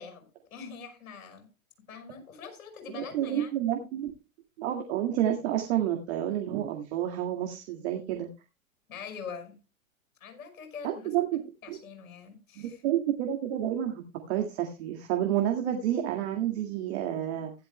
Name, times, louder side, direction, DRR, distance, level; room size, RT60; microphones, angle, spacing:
voice 1, 0.0-1.5 1.9-3.6 8.9-9.6 10.2-11.2 11.6-12.8, left 6 dB, 70° left, 5.5 m, -43 dB
voice 2, 2.9-4.1 4.6-8.3 10.8-11.4 11.7-11.8 12.6-17.5, right 11 dB, 50° right, 2.0 m, -29 dB
15.5 x 12.0 x 2.2 m
hypercardioid pair, 110°, 42 cm